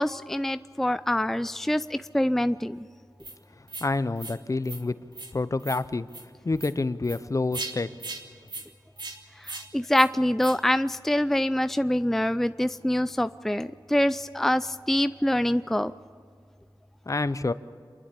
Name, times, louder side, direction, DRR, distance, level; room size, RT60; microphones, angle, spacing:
voice 1, 0.0-2.8 9.4-15.9, left 1 dB, 5° left, 12 dB, 0.4 m, -25 dB
sound 1, 3.2-3.3 3.7-3.9 4.2-4.4 4.6-4.8 5.1-5.3 5.6-5.8 6.1-6.2 6.6-6.7 7.0-7.2 7.5-7.7 8.0-8.2 8.5-8.6 9.0-9.2 9.4-9.6 9.9-10.1 10.4-10.6, right 3 dB, 65° right, 2.3 m, -38 dB
voice 2, 3.8-5.0 5.3-6.1 6.4-7.9 17.1-17.5, left 3 dB, 40° left, 14 dB, 0.7 m, -27 dB
28.5 x 11.5 x 8.4 m, 2.3 s
wide cardioid pair, 65°, 8 cm